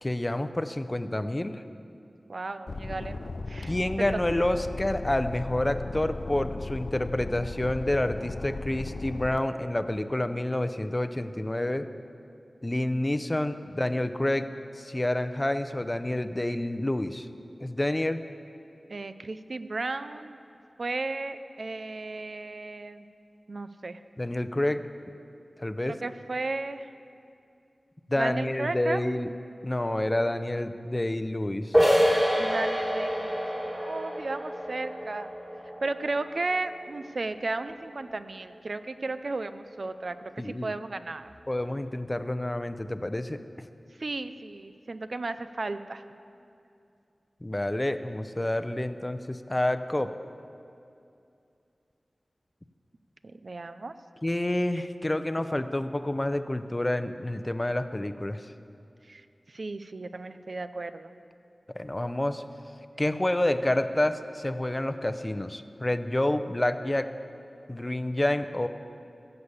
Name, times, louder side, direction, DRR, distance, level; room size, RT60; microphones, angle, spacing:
voice 1, 0.0-1.6 3.7-11.9 12.6-14.5 14.8-17.3 17.6-18.2 24.2-24.8 25.6-26.0 28.1-29.3 29.6-31.8 40.4-40.7 41.5-43.4 47.4-50.1 54.2-58.4 61.7-62.4 63.0-67.1 67.7-68.7, left 1 dB, 25° left, 10 dB, 0.6 m, -28 dB
voice 2, 2.3-4.1 18.9-20.4 20.8-23.0 23.5-24.0 25.9-26.9 28.2-29.0 32.4-35.3 35.8-41.3 44.0-46.0 53.3-53.9 59.1-59.2 59.5-61.1, right 3 dB, 65° right, 11 dB, 0.5 m, -34 dB
sound 1, 2.7-9.4, left 3 dB, 70° left, 0.4 m, -36 dB
sound 2, 31.7-37.2, equal, 15° right, 3.0 m, -27 dB
15.5 x 6.9 x 8.1 m, 2.6 s
wide cardioid pair, 55°, 0 cm